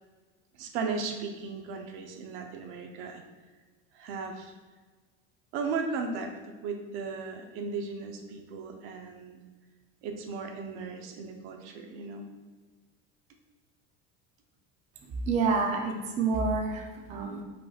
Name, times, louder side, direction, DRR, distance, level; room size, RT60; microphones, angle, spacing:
voice 1, 0.6-3.2 3.9-4.5 5.5-9.4 10.0-12.3, right 4 dB, 80° right, 4 dB, 0.7 m, -36 dB
voice 2, 15.3-17.4, right 4 dB, 25° right, 2 dB, 0.4 m, -28 dB
5.3 x 4.3 x 2.3 m, 1.3 s
cardioid pair, 170°, 29 cm